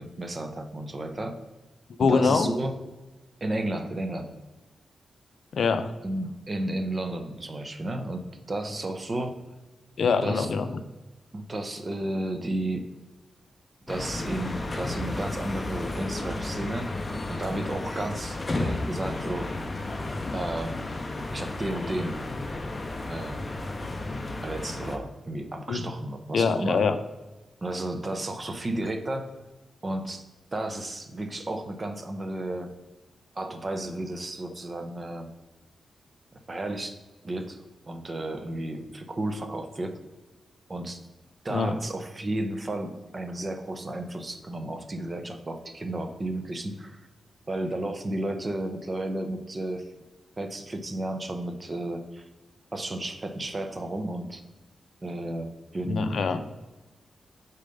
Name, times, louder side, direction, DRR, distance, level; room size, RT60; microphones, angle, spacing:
voice 1, 0.0-1.4 2.0-2.7 3.4-4.4 6.0-9.4 10.2-10.5 11.3-12.9 13.9-16.9 17.3-19.5 20.3-20.8 21.3-22.1 23.1-23.5 24.4-26.8 27.6-29.3 29.8-30.2 30.5-32.7 33.4-35.3 36.5-37.0 37.2-40.0 40.7-41.0 41.4-47.1 47.5-49.9 50.4-52.3 52.7-54.4 55.0-56.1, right 1 dB, 30° right, 7 dB, 0.8 m, -33 dB
voice 2, 2.0-2.5 5.5-5.9 10.0-10.8 25.7-25.8 26.3-27.0 41.5-41.7 55.8-56.4, left 5 dB, 70° left, 10 dB, 0.5 m, -24 dB
sound 1, 13.9-25.0, left 2 dB, 30° left, 0.7 m, -33 dB
5.0 x 4.2 x 5.2 m, 1.1 s
cardioid pair, 90°, 0 cm